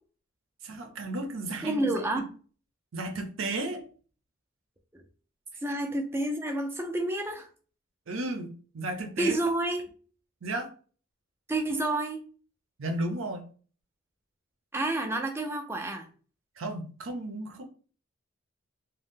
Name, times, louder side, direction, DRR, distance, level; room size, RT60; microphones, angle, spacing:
voice 1, 0.6-1.9 2.9-3.9 8.1-9.3 10.4-10.7 12.8-13.5 16.6-17.6, right 2 dB, 75° right, 5 dB, 0.6 m, -34 dB
voice 2, 1.6-2.3 4.9-5.0 5.6-7.5 9.2-9.9 11.5-12.2 14.7-16.1, right 1 dB, 10° right, 4 dB, 0.4 m, -29 dB
2.6 x 2.1 x 3.5 m, 0.40 s
head